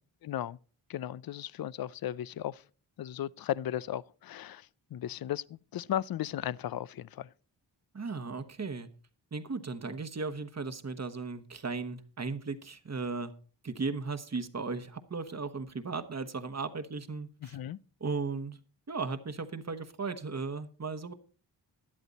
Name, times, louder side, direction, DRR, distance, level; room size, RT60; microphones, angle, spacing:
voice 1, 0.2-0.6 0.9-2.6 3.0-7.3 17.4-17.8, left 11 dB, 55° left, 0.5 m, -36 dB
voice 2, 7.9-8.9 9.3-13.3 13.6-17.6 18.0-18.6 18.9-21.1, right 4 dB, 35° right, 1.2 m, -36 dB
12.5 x 11.0 x 4.0 m
wide cardioid pair, 85°, 44 cm